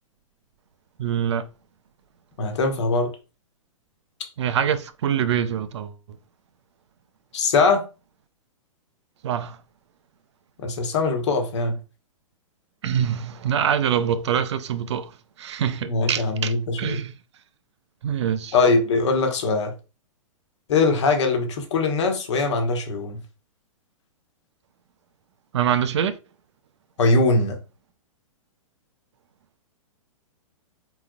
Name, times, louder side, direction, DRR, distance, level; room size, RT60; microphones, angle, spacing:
voice 1, 1.0-1.5 4.4-6.0 9.2-9.6 12.8-17.2 18.0-18.5 25.5-26.2, right 8 dB, 55° right, 0.5 m, -25 dB
voice 2, 2.4-3.1 7.3-7.8 10.6-11.8 15.8-17.0 18.5-19.7 20.7-23.2 27.0-27.6, left 3 dB, 55° left, 1.2 m, -21 dB
4.8 x 4.0 x 2.3 m
figure-of-eight pair, 110°, 18 cm